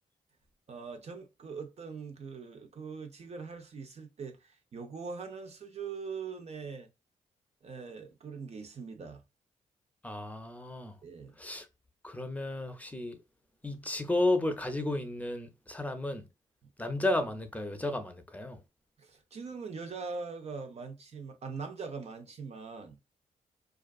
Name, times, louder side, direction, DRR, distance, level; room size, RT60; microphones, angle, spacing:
voice 1, 0.7-6.9 7.6-9.2 11.0-11.4 16.6-16.7 19.0-23.0, right 5 dB, 50° right, 0.5 m, -42 dB
voice 2, 10.0-10.9 11.4-11.7 12.0-13.2 13.6-16.2 16.8-18.6, left 2 dB, 10° left, 0.6 m, -33 dB
2.4 x 2.4 x 2.3 m
supercardioid pair, 50°, 14 cm